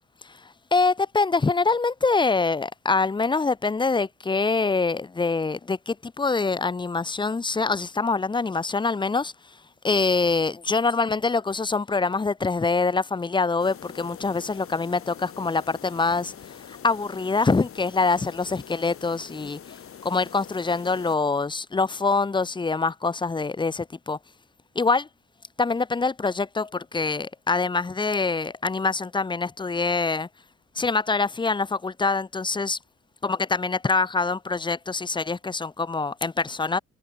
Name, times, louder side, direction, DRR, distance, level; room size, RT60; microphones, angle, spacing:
voice 1, 0.7-9.3 9.8-16.3 16.7-19.8 20.0-24.2 24.7-25.1 25.6-30.3 30.8-32.8 33.2-36.8, left 4 dB, 15° left, 0.7 m, -25 dB
sound 1, 13.6-21.2, left 8 dB, 50° left, 2.2 m, -44 dB
open air
wide cardioid pair, 165°, 29 cm